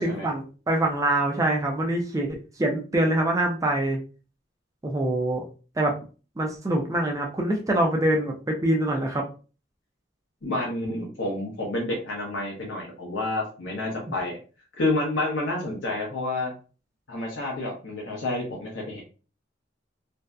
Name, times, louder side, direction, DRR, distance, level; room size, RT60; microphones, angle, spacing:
voice 1, 0.0-4.0 4.8-5.4 5.8-6.0 6.4-9.2, right 1 dB, 20° right, 1 dB, 0.4 m, -25 dB
voice 2, 10.4-14.4 14.8-16.5 17.1-19.0, left 2 dB, 85° left, -2 dB, 0.7 m, -29 dB
2.6 x 2.1 x 2.2 m, 0.35 s
head